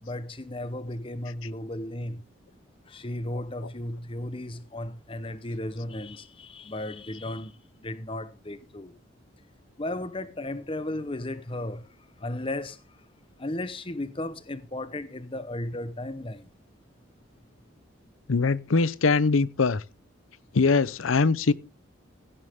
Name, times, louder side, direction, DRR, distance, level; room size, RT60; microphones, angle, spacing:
voice 1, 0.0-2.3 2.9-8.9 9.8-11.9 12.2-13.0 13.4-16.5, left 1 dB, 25° left, 0.9 m, -35 dB
voice 2, 18.3-19.8 20.5-21.5, left 4 dB, 85° left, 0.7 m, -22 dB
16.0 x 9.8 x 3.6 m
head